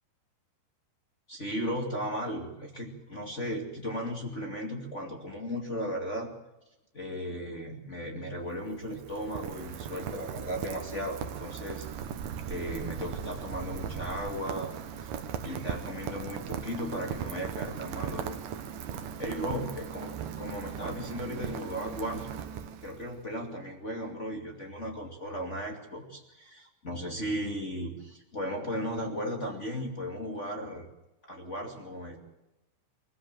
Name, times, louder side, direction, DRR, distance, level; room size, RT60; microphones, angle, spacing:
voice 1, 1.3-6.3 6.9-11.9 12.5-14.7 15.0-15.1 15.4-18.4 19.2-22.3 22.8-30.9 31.3-32.2, equal, 25° left, 2 dB, 1.7 m, -36 dB
Rain, 8.4-23.2, right 8 dB, 65° right, 2.2 m, -38 dB
24.0 x 15.5 x 7.5 m, 0.97 s
omnidirectional pair, 5.3 m